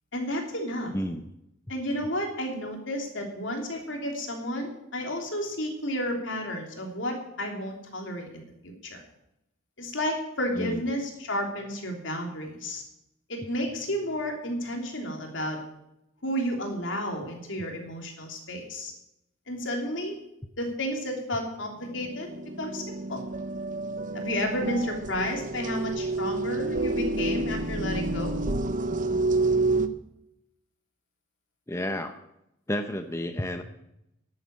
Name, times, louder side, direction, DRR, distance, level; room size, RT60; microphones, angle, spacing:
voice 1, 0.1-0.9 1.7-9.0 9.8-12.8 13.3-15.6 16.2-18.9 19.5-20.2 20.6-22.3 22.6-23.2 24.1-28.4, equal, 70° left, 2 dB, 3.1 m, -32 dB
voice 2, 0.9-1.3 10.6-10.8 31.7-32.2 32.7-33.6, left 1 dB, 15° left, 7 dB, 0.7 m, -31 dB
sound 1, 21.8-29.9, right 2 dB, 40° right, 0.8 m, -29 dB
11.0 x 9.2 x 8.7 m, 0.83 s
head